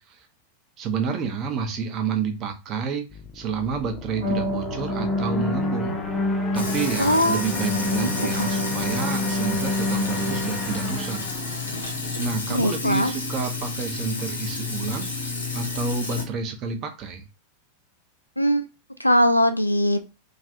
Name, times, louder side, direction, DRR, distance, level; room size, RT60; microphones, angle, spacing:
voice 1, 0.8-3.1 3.3-6.0 6.5-11.2 12.2-15.1 15.5-17.2, right 6 dB, 35° right, 5 dB, 0.6 m, -29 dB
sound 1, 3.1-12.6, left 4 dB, 20° left, 0.5 m, -37 dB
sound 2, 4.2-11.3, left 2 dB, 85° right, 1.0 m, -27 dB
Sink (filling or washing), 6.5-16.2, left 3 dB, 70° left, 0.9 m, -31 dB
voice 2, 7.0-7.4 8.4-8.5 12.5-13.1 18.4-18.7 19.0-20.0, equal, 85° left, 9 dB, 0.3 m, -20 dB
2.5 x 2.4 x 3.3 m, 0.27 s
figure-of-eight pair, 90°, 0 cm